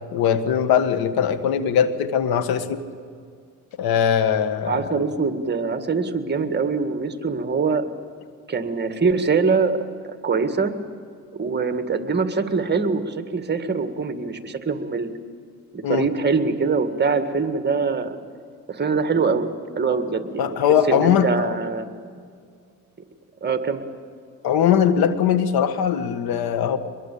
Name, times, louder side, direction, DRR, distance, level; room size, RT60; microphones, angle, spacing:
voice 1, 0.1-2.8 3.8-5.0 15.8-16.1 20.4-21.6 24.4-26.8, left 8 dB, 85° left, 12 dB, 1.6 m, -20 dB
voice 2, 4.7-7.9 8.5-9.8 10.0-10.7 11.3-15.1 15.7-18.2 18.7-19.5 19.7-21.9 23.4-23.8, right 4 dB, 30° right, 9 dB, 1.9 m, -23 dB
23.5 x 21.5 x 8.6 m, 2.2 s
cardioid pair, 105°, 36 cm